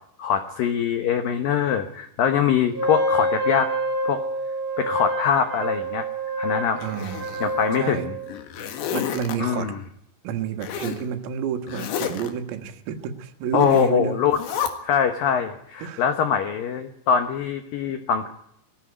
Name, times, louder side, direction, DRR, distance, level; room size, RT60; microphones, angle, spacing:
voice 1, 0.2-3.7 4.0-4.2 4.8-6.1 6.4-6.8 7.4-8.1 9.4-9.8 13.5-14.4 14.8-18.3, left 8 dB, 85° left, 7 dB, 2.0 m, -23 dB
Wind instrument woodwind instrument, 2.7-8.3, right 1 dB, 40° right, 1.4 m, -27 dB
Zipper (clothing), 6.8-7.8 8.2-9.4 10.6-11.0 11.7-12.3 13.6-13.9 14.3-14.7, left 9 dB, 65° left, 3.6 m, -31 dB
voice 2, 6.8-7.4 7.7-8.1 8.6-9.7 10.2-14.2 15.8-16.1, right 8 dB, 85° right, 6 dB, 4.1 m, -30 dB
20.0 x 15.0 x 9.7 m, 0.74 s
omnidirectional pair, 5.8 m